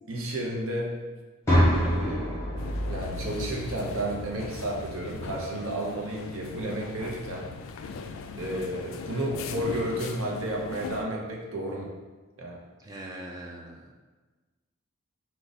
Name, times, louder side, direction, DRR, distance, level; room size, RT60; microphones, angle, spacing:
voice 1, 0.1-1.0 1.7-2.4 2.9-7.5 8.4-11.9 12.4-12.6, right 1 dB, 65° right, -1 dB, 0.8 m, -32 dB
sound 1, 1.5-5.4, equal, 15° left, 1.4 m, -28 dB
sound 2, 2.6-11.0, left 4 dB, 65° left, 0.3 m, -39 dB
voice 2, 12.8-13.9, right 1 dB, 15° right, -1 dB, 0.3 m, -41 dB
4.9 x 2.3 x 4.0 m, 1.3 s
head